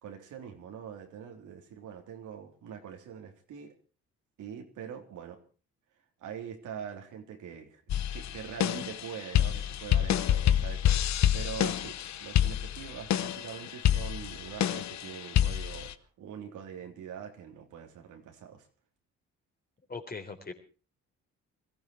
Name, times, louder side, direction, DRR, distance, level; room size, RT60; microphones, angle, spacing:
voice 1, 0.0-3.7 4.4-5.4 6.2-18.6, right 8 dB, 80° right, 4 dB, 3.5 m, -43 dB
sound 1, 7.9-15.9, left 11 dB, 65° left, 1.0 m, -28 dB
voice 2, 19.9-20.5, left 4 dB, 30° left, 4 dB, 3.9 m, -40 dB
21.5 x 15.0 x 4.6 m, 0.38 s
cardioid pair, 90°, 30 cm